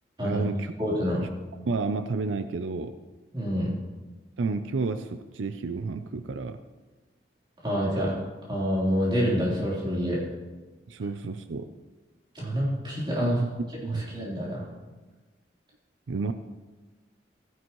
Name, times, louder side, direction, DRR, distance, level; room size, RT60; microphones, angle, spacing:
voice 1, 0.2-0.7 1.2-1.3 1.6-3.0 4.4-6.6 10.9-11.7 13.2-13.5 13.8-14.2 16.1-16.3, right 4 dB, 85° right, 10 dB, 0.5 m, -30 dB
voice 2, 0.8-1.2 3.3-3.7 7.6-8.1 8.5-10.2 12.3-13.4 13.9-14.7, equal, 25° right, -6 dB, 3.6 m, -27 dB
15.5 x 10.0 x 3.1 m, 1.3 s
head